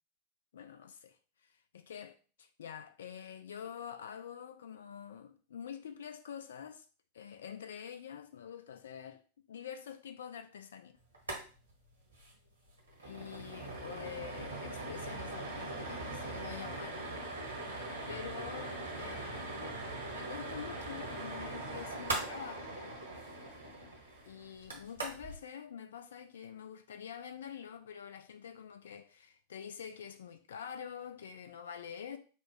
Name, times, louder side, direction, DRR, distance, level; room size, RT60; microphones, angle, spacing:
voice 1, 0.5-6.9 7.1-9.2 9.5-11.0 13.0-17.1 18.1-19.8 20.1-23.0 24.3-32.2, left 8 dB, 65° left, 0.3 m, -46 dB
sound 1, 11.1-11.4 11.7-11.8 12.1-12.3 12.7-25.4, right 2 dB, 80° right, 1.2 m, -41 dB
5.2 x 2.0 x 3.4 m
figure-of-eight pair, 90°, 0 cm